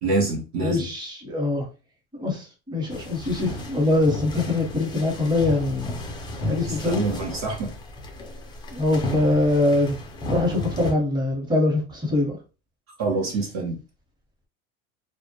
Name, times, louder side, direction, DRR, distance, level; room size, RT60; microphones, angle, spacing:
voice 1, 0.0-0.9 6.7-7.7 13.0-13.8, right 3 dB, 45° right, 0.7 m, -26 dB
voice 2, 0.6-1.7 2.2-5.9 6.4-7.0 8.7-10.0 10.3-12.4, left 2 dB, 10° right, 0.8 m, -23 dB
sound 1, 2.9-10.9, left 1 dB, 15° left, 0.3 m, -34 dB
2.1 x 2.0 x 2.8 m
supercardioid pair, 115°, 39 cm